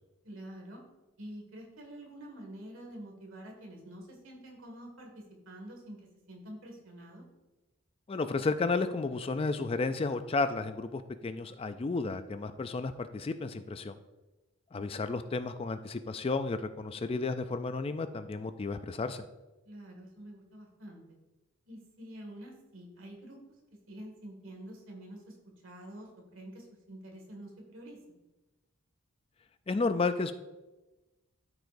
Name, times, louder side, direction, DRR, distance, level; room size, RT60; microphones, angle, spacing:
voice 1, 0.2-0.8 1.2-6.0 6.3-7.2 19.6-21.0 21.7-23.4 23.9-25.4 25.6-28.0, right 1 dB, 65° right, 1 dB, 2.0 m, -47 dB
voice 2, 8.1-14.0 14.7-19.2 29.7-30.3, left 3 dB, 25° left, 10 dB, 0.3 m, -32 dB
12.5 x 4.9 x 2.6 m, 1.1 s
head